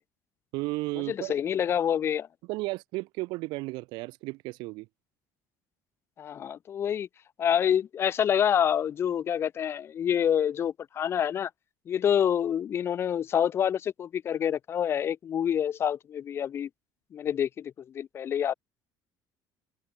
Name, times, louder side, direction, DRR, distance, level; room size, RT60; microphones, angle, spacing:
voice 1, 0.5-1.3 2.5-4.9, right 23 dB, 85° right, 1.4 m, -33 dB
voice 2, 1.1-2.3 6.2-7.1 7.4-11.5 11.9-16.7 17.1-18.5, left 9 dB, 35° left, 2.1 m, -27 dB
cardioid pair, 170°, 8 cm